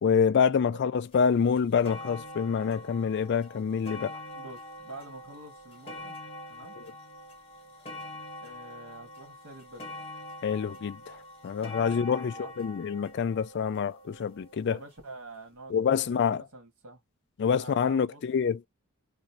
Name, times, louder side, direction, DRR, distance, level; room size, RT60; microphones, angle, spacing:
voice 1, 0.0-4.2 6.8-6.9 10.4-14.8 15.7-16.4 17.4-18.7, left 6 dB, 50° left, 0.3 m, -27 dB
sound 1, 1.1-1.2 1.6-14.7 15.5-15.6, left 1 dB, 25° left, 1.1 m, -44 dB
voice 2, 4.3-6.2 6.5-6.8 8.4-9.9 11.8-12.5 14.7-17.0 17.6-18.2, right 2 dB, 70° right, 1.5 m, -47 dB
3.0 x 2.5 x 2.7 m
head